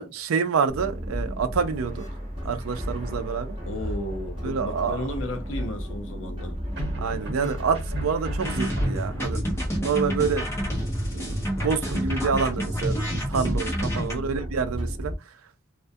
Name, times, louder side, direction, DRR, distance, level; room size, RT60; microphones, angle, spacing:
voice 1, 0.0-2.0 2.4-3.6 4.4-5.0 7.0-9.4 9.8-10.4 11.1-15.1, right 5 dB, 80° right, 0.4 m, -27 dB
sound 1, 0.7-15.1, equal, 25° right, 0.7 m, -33 dB
voice 2, 3.6-6.6 14.0-14.3, left 1 dB, 60° left, 0.6 m, -34 dB
sound 2, 4.1-4.7 6.8-9.4, right 1 dB, 50° right, 1.1 m, -36 dB
sound 3, 8.4-14.1, equal, 10° left, 0.6 m, -29 dB
2.3 x 2.1 x 2.6 m
head